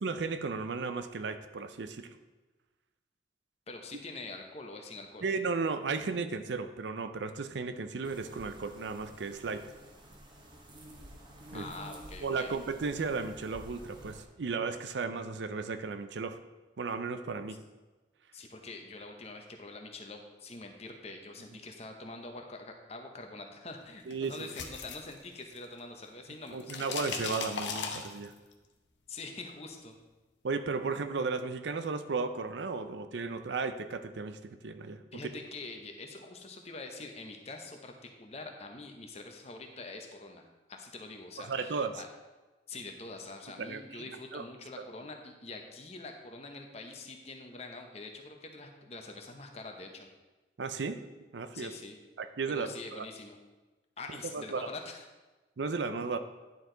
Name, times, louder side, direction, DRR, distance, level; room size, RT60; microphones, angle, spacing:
voice 1, 0.0-2.1 5.2-9.6 11.5-11.7 12.2-16.4 16.8-17.6 24.1-24.5 26.5-28.3 30.4-35.2 41.4-42.0 43.6-44.4 44.8-44.9 50.6-51.0 51.3-51.7 52.2-53.1 54.3-54.7 55.6-56.2, right 4 dB, 70° right, 10 dB, 0.5 m, -35 dB
voice 2, 3.7-5.3 11.5-12.5 18.3-26.9 29.1-30.0 35.1-42.1 42.7-50.1 51.5-52.0 52.5-53.4 54.0-55.0, left 3 dB, 35° left, 4 dB, 0.8 m, -45 dB
sound 1, 8.0-14.2, right 1 dB, 25° right, 0.9 m, -50 dB
sound 2, 24.1-25.8 26.1-28.5, left 5 dB, 75° left, 0.8 m, -38 dB
10.5 x 4.6 x 3.9 m, 1.2 s
head